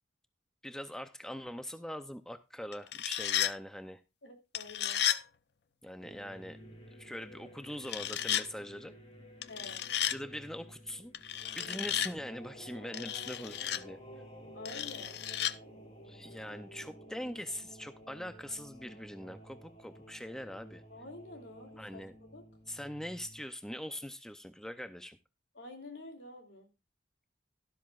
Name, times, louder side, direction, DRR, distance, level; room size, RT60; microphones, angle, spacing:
voice 1, 0.6-4.0 5.8-6.6 6.9-8.9 10.1-11.1 11.5-14.0 16.0-20.8 21.8-22.1 22.7-25.2, equal, 5° left, 10 dB, 0.5 m, -42 dB
sound 1, 2.7-3.5 4.5-5.2 7.8-8.5 9.4-10.2 11.1-12.1 12.9-13.8 14.7-15.5, left 11 dB, 65° left, 0.5 m, -33 dB
voice 2, 4.2-5.0 9.5-9.8 14.5-15.2 20.9-22.4 25.5-26.7, left 2 dB, 80° left, 4 dB, 2.9 m, -48 dB
sound 2, 6.0-23.4, equal, 35° left, 3.4 m, -52 dB
12.5 x 12.0 x 2.4 m, 0.27 s
head